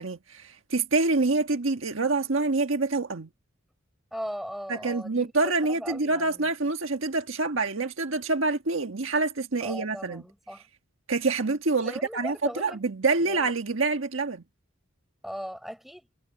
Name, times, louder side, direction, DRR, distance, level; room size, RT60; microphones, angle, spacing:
voice 1, 0.0-3.3 4.7-10.2 11.1-14.4, right 3 dB, 70° right, 1.5 m, -26 dB
voice 2, 4.1-6.5 9.6-10.6 11.8-12.8 13.2-13.8 15.2-16.1, equal, ahead, 5.8 m, -39 dB
head